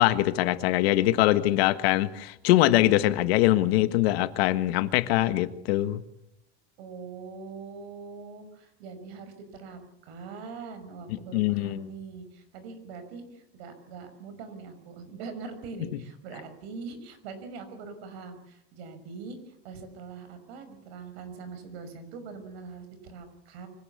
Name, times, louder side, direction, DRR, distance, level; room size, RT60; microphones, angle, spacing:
voice 1, 0.0-6.0 11.3-11.9, left 15 dB, 80° left, 12 dB, 1.6 m, -23 dB
voice 2, 6.8-23.7, right 4 dB, 85° right, 9 dB, 5.8 m, -42 dB
24.5 x 17.0 x 8.5 m, 0.81 s
cardioid pair, 175°, 30 cm